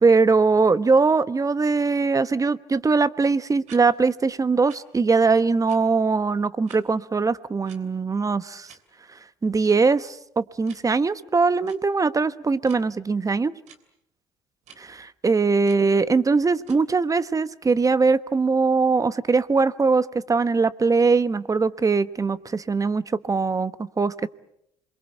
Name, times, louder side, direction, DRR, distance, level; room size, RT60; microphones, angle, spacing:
voice 1, 0.0-8.7 9.4-13.5 15.0-24.3, right 4 dB, 25° right, 15 dB, 1.1 m, -21 dB
sound 1, 3.6-3.8 4.7-4.8 5.6-5.8 6.6-6.8 7.6-7.8 8.6-8.8 9.7-9.8 10.6-10.8 11.6-11.8 12.6-12.8 13.7-13.8 14.6-14.8 15.7-15.8 16.6-16.8, right 7 dB, 70° right, 3.1 m, -48 dB
27.5 x 22.5 x 8.1 m, 0.77 s
hypercardioid pair, 60°, 13 cm